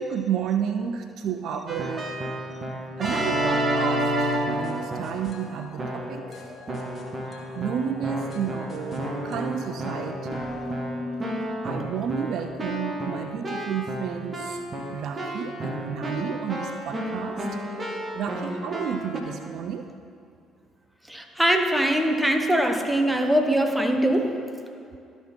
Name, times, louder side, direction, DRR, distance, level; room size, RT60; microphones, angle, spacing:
voice 1, 0.0-2.1 3.0-6.5 7.3-10.5 11.4-14.6 14.9-17.5 17.7-17.8 18.1-19.9, right 8 dB, 60° right, 8 dB, 0.3 m, -31 dB
Keyboard (musical), 1.7-5.3 5.8-6.3 6.7-19.2, right 1 dB, 35° right, 1.3 m, -31 dB
sound 1, 4.3-12.1, left 2 dB, 35° left, 1.3 m, -41 dB
voice 2, 21.1-24.3, right 1 dB, 5° right, 4 dB, 0.9 m, -22 dB
12.0 x 4.4 x 4.3 m, 2.4 s
figure-of-eight pair, 50°, 0 cm